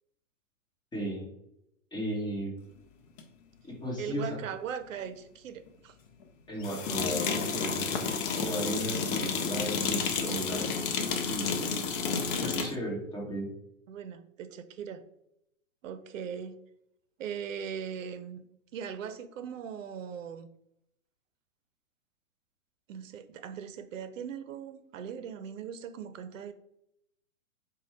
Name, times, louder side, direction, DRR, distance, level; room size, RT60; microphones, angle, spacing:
voice 1, 0.9-1.3 1.9-2.6 3.6-4.4 6.5-8.1 8.4-10.7 11.3-11.8 12.4-13.5, equal, 10° left, -4 dB, 1.2 m, -35 dB
sound 1, 3.2-3.3 6.6-12.7, left 5 dB, 40° left, 0.6 m, -31 dB
voice 2, 4.0-6.0 12.3-12.7 13.9-15.0 15.8-16.6 17.2-18.4 18.7-20.5 22.9-26.5, right 8 dB, 75° right, 11 dB, 0.6 m, -39 dB
5.0 x 2.3 x 3.2 m, 0.78 s
hypercardioid pair, 130°, 40 cm